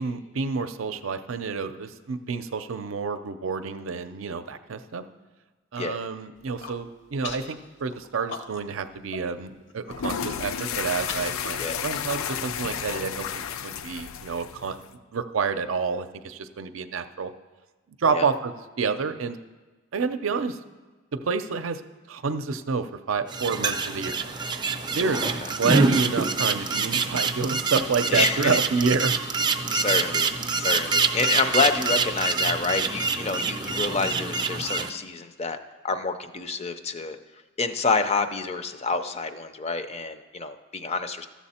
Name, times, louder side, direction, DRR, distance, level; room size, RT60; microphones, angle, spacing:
voice 1, 0.0-5.0 5.7-13.3 13.6-14.8 15.1-17.3 18.0-19.4 19.9-20.6 21.1-21.8 22.1-24.2 24.9-25.3 25.6-29.1, right 5 dB, 75° right, 9 dB, 0.5 m, -28 dB
Human voice, 6.4-6.8 7.2-7.5 7.9-8.8 9.1-9.2 9.6-9.9 10.5-13.3, left 4 dB, 60° left, 0.8 m, -40 dB
sound 1, 9.9-14.9, left 7 dB, 90° left, 0.4 m, -32 dB
sound 2, 23.3-34.9, right 4 dB, 20° right, 0.4 m, -26 dB
voice 2, 25.0-25.5 28.1-28.6 29.7-35.6 35.8-37.2 37.6-41.3, left 4 dB, 30° left, 9 dB, 0.5 m, -28 dB
13.0 x 7.2 x 4.3 m, 1.3 s
head